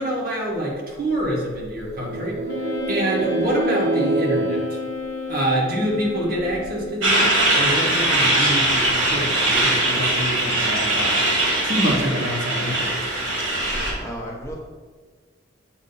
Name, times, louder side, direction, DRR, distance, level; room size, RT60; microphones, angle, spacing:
voice 1, 0.0-2.4 2.9-4.8 5.3-11.2 11.6-13.1, right 1 dB, 45° right, -3 dB, 1.4 m, -26 dB
sound 1, 1.9-5.8, right 2 dB, 90° right, 0.4 m, -26 dB
Wind instrument woodwind instrument, 2.5-7.1, left 2 dB, 65° left, 0.6 m, -32 dB
Truck, 7.0-13.9, right 1 dB, 75° right, 1.7 m, -21 dB
voice 2, 13.4-14.5, equal, 15° left, -3 dB, 0.8 m, -33 dB
7.3 x 2.6 x 5.4 m, 1.4 s
head